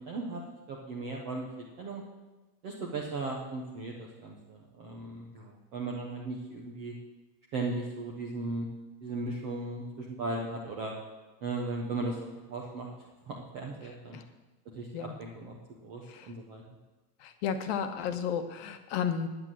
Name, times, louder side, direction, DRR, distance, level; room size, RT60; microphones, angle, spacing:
voice 1, 0.1-0.4 0.7-1.5 1.8-2.0 2.6-6.9 7.5-8.7 9.0-10.9 11.4-12.2 12.5-12.9 13.3-14.2 14.7-16.6, right 2 dB, 15° right, -2 dB, 0.4 m, -37 dB
voice 2, 17.2-19.3, left 7 dB, 40° left, 8 dB, 1.1 m, -33 dB
9.7 x 9.7 x 7.4 m, 1.1 s
supercardioid pair, 160°, 50 cm